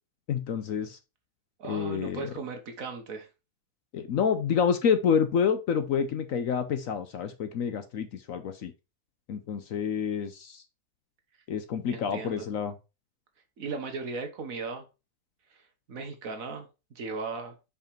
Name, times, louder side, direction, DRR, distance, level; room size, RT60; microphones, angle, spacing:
voice 1, 0.3-1.0 1.6-2.3 3.9-8.7 9.3-10.6 11.5-12.7, left 7 dB, 65° left, 9 dB, 1.0 m, -28 dB
voice 2, 1.6-3.3 11.9-12.5 13.6-14.8 15.5-15.6 15.9-16.7 16.9-17.5, right 4 dB, 55° right, 6 dB, 1.4 m, -37 dB
5.3 x 4.9 x 4.4 m, 0.29 s
omnidirectional pair, 1.8 m